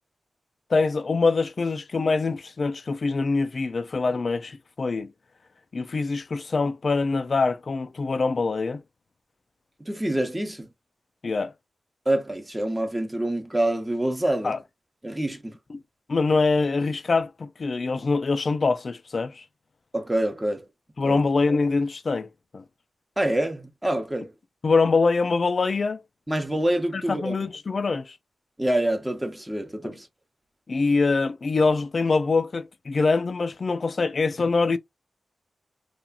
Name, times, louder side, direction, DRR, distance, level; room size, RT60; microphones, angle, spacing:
voice 1, 0.7-5.1 5.7-8.8 11.2-11.5 14.4-14.6 15.7-15.8 16.1-19.4 21.0-22.3 22.5-22.6 24.6-26.0 26.9-28.2 29.8-29.9 30.7-34.8, left 4 dB, 50° left, 0.4 m, -24 dB
voice 2, 9.9-10.7 12.1-14.5 15.0-15.5 19.9-20.7 21.0-21.2 23.2-24.3 26.3-27.3 28.6-30.1, right 1 dB, 15° right, 0.8 m, -26 dB
2.8 x 2.4 x 2.3 m
wide cardioid pair, 95°, 0 cm